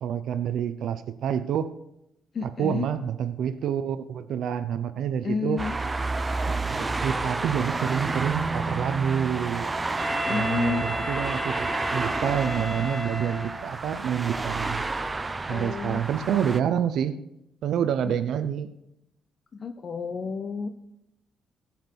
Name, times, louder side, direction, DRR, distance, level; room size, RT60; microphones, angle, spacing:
voice 1, 0.0-1.7 2.4-5.6 6.7-9.7 10.3-14.8 15.5-17.2 17.6-18.7, right 8 dB, 75° right, 11 dB, 0.7 m, -28 dB
voice 2, 2.3-2.9 5.2-5.7 10.2-10.8 15.5-16.0 18.1-18.2 19.5-20.7, left 5 dB, 45° left, 7 dB, 0.7 m, -30 dB
sound 1, 5.6-16.6, right 3 dB, 20° right, 0.6 m, -30 dB
Wind instrument woodwind instrument, 10.0-13.8, left 1 dB, 40° right, 1.6 m, -33 dB
16.0 x 6.0 x 4.6 m, 0.82 s
cardioid pair, 90°, 0 cm